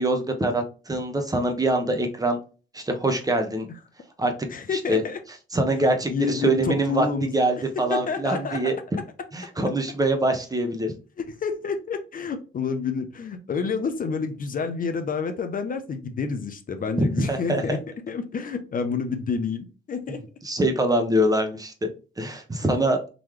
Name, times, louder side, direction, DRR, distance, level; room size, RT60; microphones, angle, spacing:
voice 1, 0.0-2.4 2.7-3.7 4.2-4.3 4.7-5.0 5.5-7.1 7.3-8.8 9.3-10.9 17.0-17.8 20.1-21.9 22.2-23.0, right 1 dB, 20° right, 5 dB, 0.9 m, -24 dB
voice 2, 4.5-5.2 6.1-7.3 7.9-8.7 11.2-17.8 18.1-20.3, left 5 dB, 45° left, 7 dB, 0.7 m, -29 dB
3.8 x 3.2 x 3.1 m, 0.34 s
cardioid pair, 90°, 20 cm